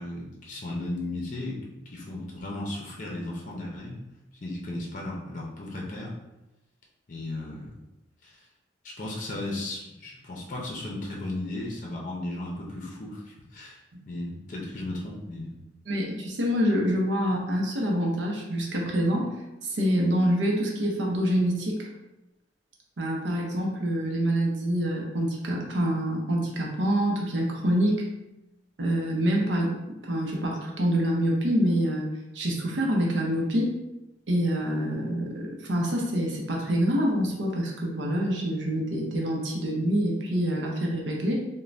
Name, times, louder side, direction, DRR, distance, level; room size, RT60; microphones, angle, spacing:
voice 1, 0.0-4.0 4.4-6.1 7.1-7.7 8.2-8.5 8.8-13.8 14.1-15.6, left 2 dB, 45° left, -3 dB, 0.5 m, -35 dB
voice 2, 15.9-19.3 19.7-21.9 23.0-28.0 28.8-32.1 32.3-33.7 34.3-41.3, equal, 80° right, -1 dB, 0.6 m, -26 dB
2.5 x 2.1 x 3.1 m, 0.96 s
head